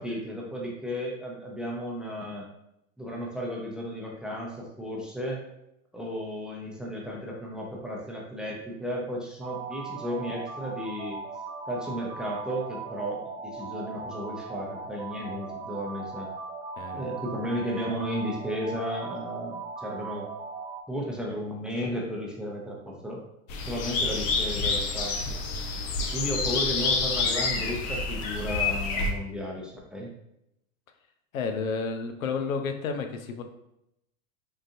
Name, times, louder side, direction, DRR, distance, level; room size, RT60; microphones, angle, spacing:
voice 1, 0.0-2.5 3.0-5.4 5.9-11.2 11.7-16.3 16.9-20.3 20.9-23.2 23.7-25.4 26.0-30.1, equal, ahead, -2 dB, 0.6 m, -34 dB
sound 1, 9.4-20.8, right 4 dB, 55° right, 0.6 m, -39 dB
voice 2, 16.8-17.1 31.3-33.4, left 5 dB, 85° left, 5 dB, 0.6 m, -31 dB
sound 2, 23.5-29.1, left 4 dB, 40° left, 0.6 m, -28 dB
3.8 x 2.5 x 2.6 m, 0.81 s
hypercardioid pair, 95°, 40 cm